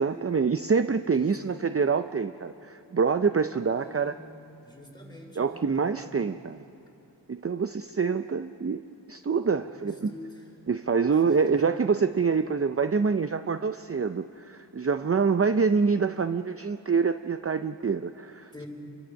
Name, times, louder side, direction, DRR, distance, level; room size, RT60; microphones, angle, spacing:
voice 1, 0.0-4.1 5.4-6.6 7.3-8.8 9.1-10.1 10.7-18.6, right 5 dB, 35° right, 10 dB, 0.5 m, -26 dB
voice 2, 1.1-1.5 3.8-4.3 4.6-6.1 9.7-10.5 11.1-11.7 12.3-12.4 18.5-18.7, left 1 dB, 10° left, -1 dB, 4.8 m, -46 dB
27.0 x 22.5 x 6.4 m, 2.8 s
wide cardioid pair, 50°, 43 cm